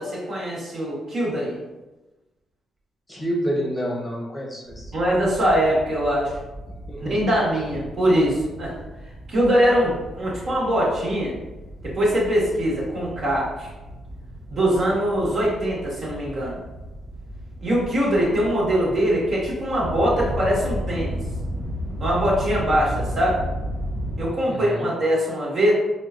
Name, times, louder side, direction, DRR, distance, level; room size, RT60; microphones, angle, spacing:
voice 1, 0.0-1.6 4.9-6.3 7.0-8.7 9.3-11.3 11.8-13.7 14.5-16.6 17.6-21.2 22.0-23.4 24.2-25.7, equal, 50° right, -6 dB, 1.5 m, -22 dB
voice 2, 3.1-4.9 6.9-7.2 24.5-24.9, equal, 15° left, -4 dB, 0.9 m, -28 dB
sound 1, 4.7-24.3, equal, 75° right, 0.9 m, -34 dB
4.5 x 2.3 x 2.5 m, 1.1 s
cardioid pair, 90°, 0 cm